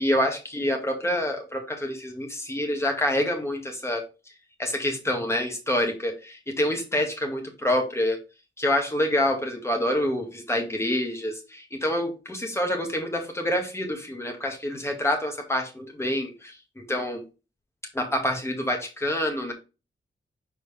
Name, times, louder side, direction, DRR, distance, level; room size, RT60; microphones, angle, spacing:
voice 1, 0.0-4.1 4.6-8.2 8.6-17.2 17.9-19.5, left 1 dB, 15° left, 2 dB, 2.0 m, -27 dB
6.8 x 4.6 x 3.5 m, 0.29 s
wide cardioid pair, 160°, 20 cm